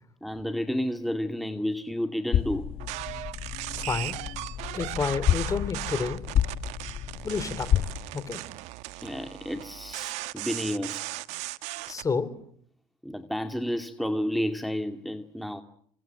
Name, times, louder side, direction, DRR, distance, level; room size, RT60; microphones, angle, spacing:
voice 1, 0.2-2.6 9.0-11.1 13.0-15.6, equal, ahead, 2.2 m, -31 dB
sound 1, 2.3-7.9, left 10 dB, 55° left, 1.7 m, -29 dB
sound 2, 2.8-12.1, right 19 dB, 75° right, 1.2 m, -37 dB
voice 2, 3.8-4.2 4.7-6.2 7.2-8.4 11.9-12.3, left 5 dB, 30° left, 3.8 m, -30 dB
29.0 x 26.0 x 7.5 m
supercardioid pair, 80°, 12 cm